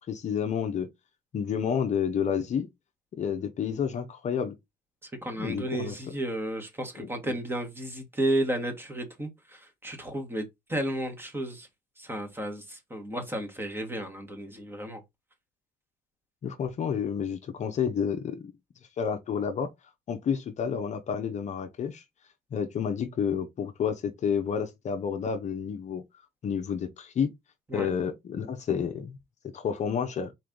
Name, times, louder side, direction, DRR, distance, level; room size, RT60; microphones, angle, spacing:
voice 1, 0.1-0.9 1.3-2.7 3.1-4.6 5.4-6.0 7.0-7.4 16.4-18.5 19.0-19.7 20.1-22.0 22.5-26.0 26.4-27.3 27.7-29.2 29.5-30.3, left 7 dB, 45° left, 0.7 m, -30 dB
voice 2, 5.0-10.4 10.7-11.7 12.0-15.0 27.7-27.9, right 1 dB, 15° right, 1.5 m, -33 dB
4.3 x 3.2 x 3.8 m
cardioid pair, 110°, 17 cm